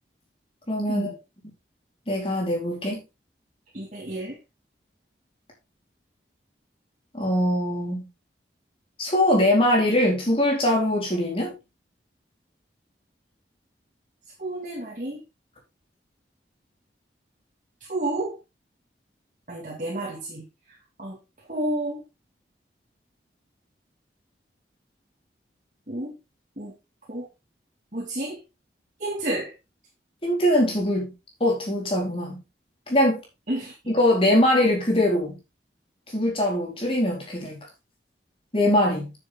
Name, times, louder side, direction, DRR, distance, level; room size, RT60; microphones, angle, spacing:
voice 1, 0.7-1.2 2.1-3.0 7.1-8.1 9.0-11.5 30.2-31.1 31.4-32.4 32.9-33.2 33.9-35.4 36.1-37.6 38.5-39.1, left 1 dB, 30° left, 3.9 m, -22 dB
voice 2, 3.7-4.4 14.4-15.2 17.9-18.4 19.5-20.4 21.0-21.2 21.5-22.0 25.9-26.1 26.6-26.7 27.1-27.3 27.9-28.4 29.0-29.5 33.5-33.7, right 1 dB, 45° right, 2.2 m, -30 dB
9.5 x 7.1 x 3.7 m
head